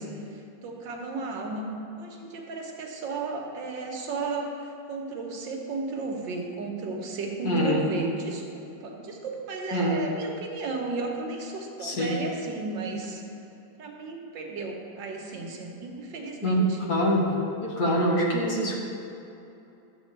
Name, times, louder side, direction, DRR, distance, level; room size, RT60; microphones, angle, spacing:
voice 1, 0.0-1.7 2.0-13.2 13.8-16.8, right 3 dB, 85° right, 1 dB, 1.8 m, -34 dB
voice 2, 7.4-7.9 9.7-10.0 11.8-12.1 16.4-17.3 17.6-18.8, equal, 55° left, -3 dB, 2.0 m, -24 dB
12.5 x 8.2 x 3.3 m, 2.8 s
omnidirectional pair, 2.0 m